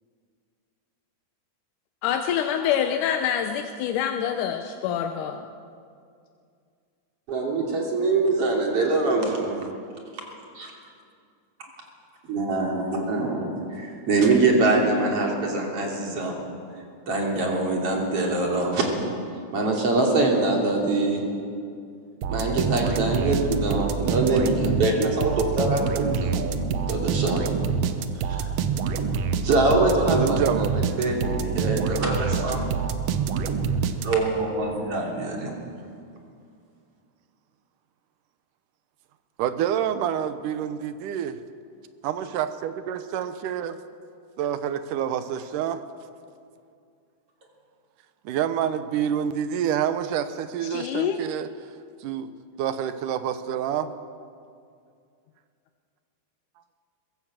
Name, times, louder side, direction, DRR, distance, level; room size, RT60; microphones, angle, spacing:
voice 1, 2.0-5.5 50.7-51.2, left 9 dB, 85° left, 5 dB, 2.4 m, -26 dB
voice 2, 7.3-9.6 10.6-10.7 12.3-13.5 13.8-16.4 17.1-18.8 19.5-21.2 22.3-26.3 26.9-27.4 28.3-28.4 29.4-32.7 34.0-35.5, right 2 dB, 50° right, 0 dB, 3.8 m, -24 dB
voice 3, 9.3-9.8 30.1-30.8 39.4-41.4 42.0-43.8 44.4-45.8 48.3-51.5 52.0-52.3 52.6-53.9, right 9 dB, 90° right, 11 dB, 2.5 m, -27 dB
sound 1, 22.2-34.4, right 6 dB, 65° right, 1.7 m, -26 dB
22.0 x 16.5 x 7.5 m, 2.3 s
omnidirectional pair, 3.6 m